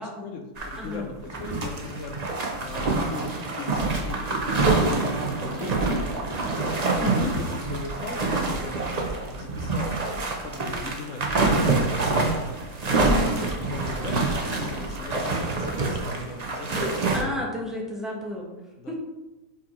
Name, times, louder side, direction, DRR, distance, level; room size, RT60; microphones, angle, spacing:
voice 1, 0.0-3.3 3.6-6.3 7.0-12.3 12.9-16.9 18.8-18.9, left 4 dB, 60° left, 4 dB, 1.0 m, -38 dB
sound 1, 0.6-0.9 1.2-17.2, right 3 dB, 40° right, 0.6 m, -26 dB
voice 2, 0.7-1.1 7.0-7.3 12.9-13.4 16.7-16.8 17.1-18.5 18.9-19.0, left 1 dB, ahead, -3 dB, 1.0 m, -31 dB
5.0 x 4.6 x 4.2 m, 1.0 s
omnidirectional pair, 1.6 m